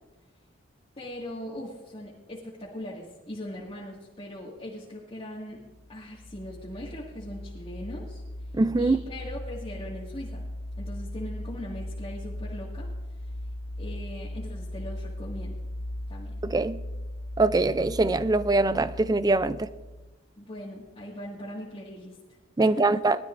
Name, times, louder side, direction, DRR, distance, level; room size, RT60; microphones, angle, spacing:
voice 1, 1.0-5.6 5.9-8.2 8.8-10.5 10.8-12.9 13.8-15.5 16.1-16.4 20.4-22.2 22.6-23.1, left 1 dB, 30° left, 2.0 m, -40 dB
sound 1, 5.7-20.2, left 1 dB, 55° left, 0.6 m, -38 dB
voice 2, 8.5-9.0 16.4-16.8 17.4-19.7 22.6-23.2, right 2 dB, 20° right, 0.4 m, -23 dB
21.0 x 12.5 x 2.6 m
head